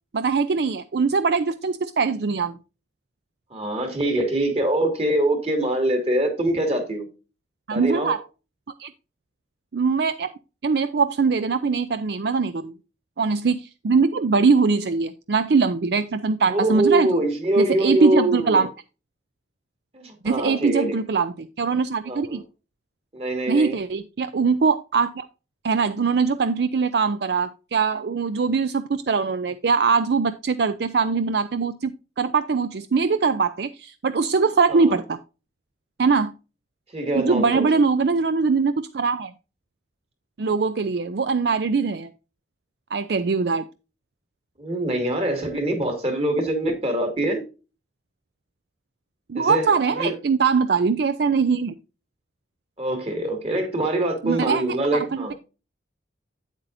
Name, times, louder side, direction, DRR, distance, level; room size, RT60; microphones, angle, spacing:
voice 1, 0.1-2.6 7.7-8.2 8.8-8.9 9.7-10.3 10.6-12.7 13.2-17.2 17.6-18.7 20.2-22.4 23.5-25.3 25.6-31.9 32.2-35.2 36.0-36.3 37.1-39.3 40.4-42.1 42.9-43.6 49.3-51.7 54.2-54.6 54.9-55.3, right 5 dB, 60° right, 0.5 m, -22 dB
voice 2, 3.5-7.1 7.7-8.2 16.5-18.6 19.9-20.9 22.1-22.4 23.1-23.8 34.7-35.0 36.9-37.7 44.6-47.4 49.3-50.2 52.8-55.3, right 1 dB, 35° right, 2.3 m, -24 dB
8.9 x 8.2 x 2.6 m
head